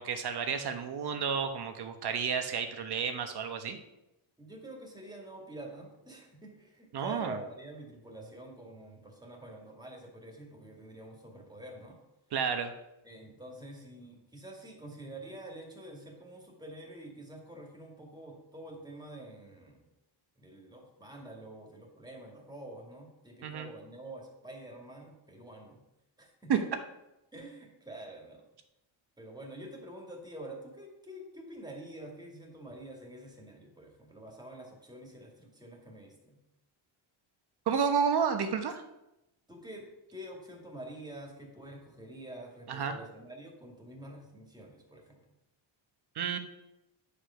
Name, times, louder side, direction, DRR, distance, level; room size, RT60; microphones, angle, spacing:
voice 1, 0.0-3.8 6.9-7.4 12.3-12.7 23.4-23.7 26.5-26.6 37.7-38.8 42.7-43.0 46.1-46.4, right 6 dB, 55° right, 7 dB, 1.1 m, -31 dB
voice 2, 4.4-12.0 13.0-19.9 20.4-25.8 26.2-26.5 27.3-28.4 29.2-36.4 39.5-45.2, right 1 dB, 10° right, 0 dB, 2.3 m, -47 dB
9.9 x 5.1 x 5.8 m, 0.89 s
cardioid pair, 125°, 48 cm